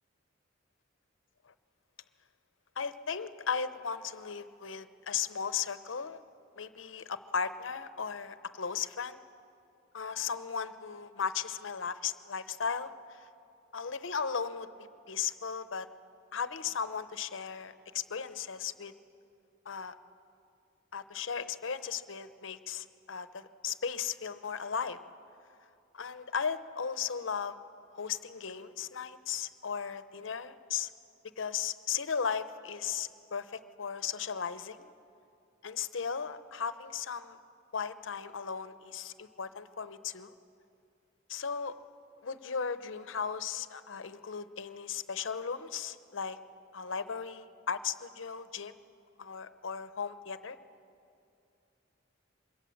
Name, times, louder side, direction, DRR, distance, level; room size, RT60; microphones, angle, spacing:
voice 1, 2.8-6.2 6.6-9.2 9.9-13.3 13.7-14.7 15.1-15.9 16.3-18.9 19.7-19.9 20.9-25.0 25.9-27.6 27.9-30.9 31.4-34.9 35.6-37.4 37.7-40.3 41.3-41.8 42.2-46.4 46.7-48.7 49.2-50.6, left 6 dB, 80° left, 12 dB, 0.8 m, -36 dB
23.0 x 17.0 x 7.1 m, 2.6 s
head